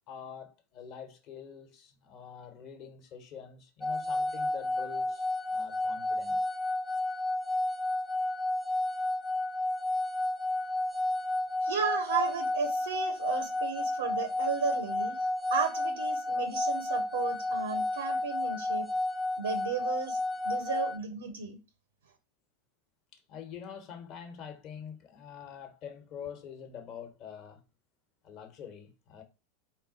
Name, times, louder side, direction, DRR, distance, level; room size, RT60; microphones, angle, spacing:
voice 1, 0.1-6.5 23.1-27.6 28.2-29.2, left 8 dB, 50° left, 1.0 m, -46 dB
sound 1, 3.8-21.0, left 2 dB, 10° left, 0.4 m, -31 dB
voice 2, 11.6-18.9 19.4-20.2 20.4-21.6, right 6 dB, 85° right, 0.6 m, -34 dB
4.0 x 2.1 x 3.9 m
hypercardioid pair, 90°, 0 cm